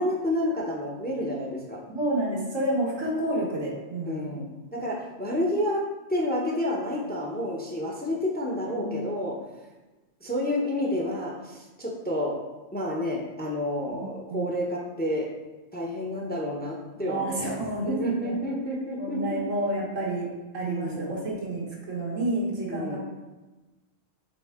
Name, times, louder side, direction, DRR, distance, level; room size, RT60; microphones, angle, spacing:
voice 1, 0.0-1.8 4.1-4.5 4.7-5.8 6.1-9.4 10.2-12.3 12.7-15.3 15.7-17.6 17.9-19.4 20.7-21.2 22.7-23.0, left 1 dB, 10° left, -1 dB, 0.7 m, -29 dB
voice 2, 1.9-4.3 8.7-9.0 13.9-14.6 17.0-18.4 19.0-20.3 20.5-23.0, right 1 dB, 85° right, -4 dB, 1.9 m, -30 dB
7.0 x 3.7 x 3.6 m, 1.1 s
omnidirectional pair, 1.3 m